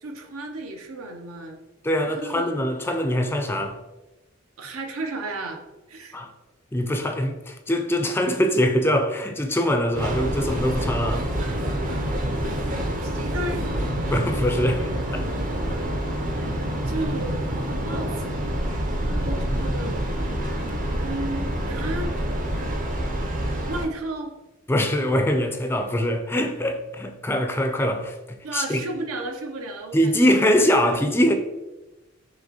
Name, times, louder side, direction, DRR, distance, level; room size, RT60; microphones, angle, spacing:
voice 1, 0.0-1.6 2.0-2.6 4.6-5.6 5.9-6.2 13.0-13.6 15.6-15.9 16.9-20.0 21.0-22.1 22.7-22.8 23.7-24.3 28.4-30.3, right 2 dB, 85° right, 0.7 m, -33 dB
voice 2, 1.8-3.8 6.1-6.3 6.7-11.3 14.1-15.2 24.7-28.8 29.9-31.3, equal, 10° left, 0.3 m, -23 dB
Train, 9.9-23.9, right 1 dB, 40° right, 0.6 m, -27 dB
5.7 x 2.9 x 2.9 m
head